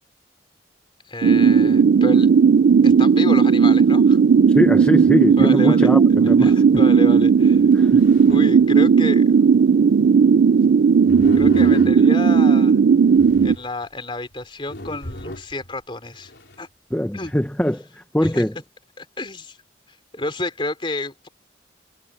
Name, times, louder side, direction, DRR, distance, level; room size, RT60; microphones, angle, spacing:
voice 1, 1.1-2.3 2.8-4.2 5.4-5.9 6.4-7.6 8.3-9.4 11.3-12.8 13.4-16.3 16.6-16.7 17.1-17.3 18.2-18.4 19.0-19.6 19.9-21.3, left 2 dB, 30° left, 3.7 m, -30 dB
sound 1, 1.2-13.5, right 6 dB, 65° right, 0.3 m, -15 dB
voice 2, 4.5-6.8 7.7-8.0 16.9-18.5, equal, 5° left, 0.7 m, -22 dB
sound 2, 5.8-5.9 6.6-6.7 7.6-9.1 11.0-12.4 13.0-13.9 14.3-14.4 14.7-15.7 16.0-16.6, left 1 dB, 70° left, 3.8 m, -34 dB
head